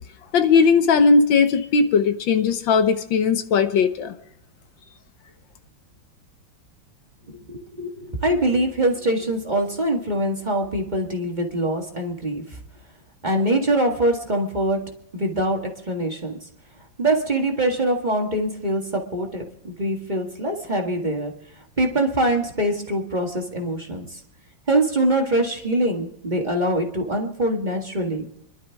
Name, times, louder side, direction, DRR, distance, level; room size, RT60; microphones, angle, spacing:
voice 1, 0.3-4.1, left 5 dB, 75° left, 9 dB, 1.7 m, -18 dB
voice 2, 7.5-12.6 13.2-14.8 15.1-15.6 15.9-16.3 17.0-21.3 21.8-24.2 24.7-28.3, right 1 dB, 25° right, 1 dB, 1.7 m, -23 dB
27.0 x 12.0 x 3.5 m, 0.76 s
omnidirectional pair, 2.1 m